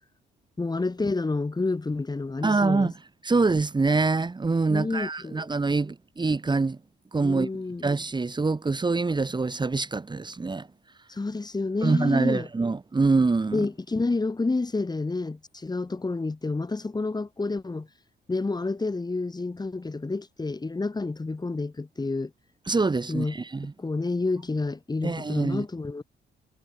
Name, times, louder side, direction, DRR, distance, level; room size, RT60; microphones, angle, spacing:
voice 1, 0.6-2.9 4.7-5.5 7.2-7.8 11.1-12.5 13.5-17.9 18.3-22.3 23.1-23.4 23.8-26.0, left 3 dB, 20° left, 2.5 m, -29 dB
voice 2, 2.4-2.9 3.2-6.8 7.1-7.5 7.8-10.7 11.8-13.7 22.7-23.7 25.0-25.6, right 3 dB, 20° right, 1.7 m, -25 dB
cardioid pair, 90°, 20 cm